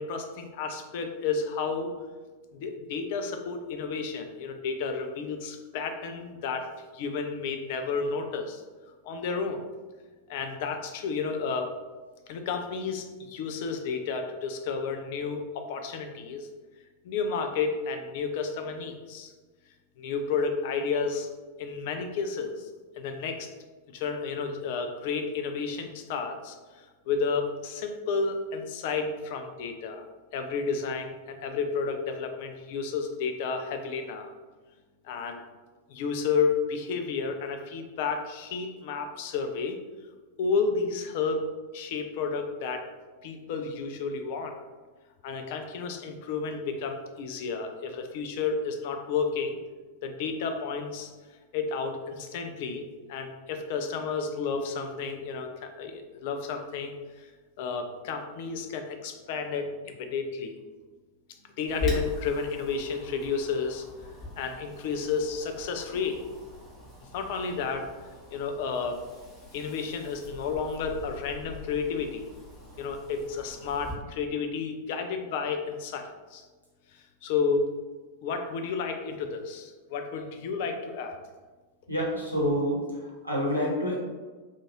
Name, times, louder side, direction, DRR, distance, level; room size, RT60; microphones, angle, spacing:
voice 1, 0.0-1.9 2.5-8.6 9.0-9.6 10.3-11.7 12.3-16.5 17.0-19.3 20.0-21.3 21.6-22.7 23.0-23.5 23.9-30.0 30.3-34.3 35.0-35.4 35.9-39.8 40.4-41.5 41.7-42.9 43.2-44.6 45.2-49.6 50.0-51.1 51.5-57.3 57.6-60.5 61.6-63.8 64.4-66.2 67.1-67.9 68.3-69.0 69.5-72.2 72.8-76.4 77.2-77.7 78.2-81.2, left 5 dB, 50° left, 5 dB, 0.3 m, -31 dB
Wind, 61.7-73.9, left 1 dB, 15° left, 0.9 m, -41 dB
voice 2, 81.9-83.9, equal, 90° left, -6 dB, 0.9 m, -28 dB
2.5 x 2.4 x 3.0 m, 1.3 s
figure-of-eight pair, 90°, 0 cm